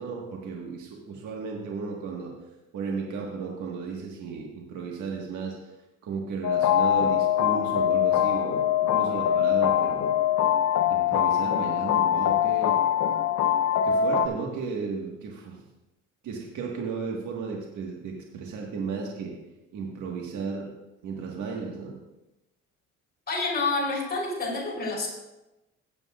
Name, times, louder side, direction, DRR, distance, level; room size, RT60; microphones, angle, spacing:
voice 1, 0.0-2.3 2.7-5.5 6.0-10.0 10.9-12.8 13.8-15.6 16.2-19.3 19.7-20.7 21.0-22.0, right 5 dB, 75° right, -1 dB, 1.6 m, -34 dB
sound 1, 6.4-14.3, left 9 dB, 60° left, 0.8 m, -23 dB
voice 2, 23.3-25.1, left 3 dB, 30° left, -4 dB, 3.7 m, -28 dB
17.0 x 8.1 x 2.4 m, 0.98 s
cardioid pair, 90°, 30 cm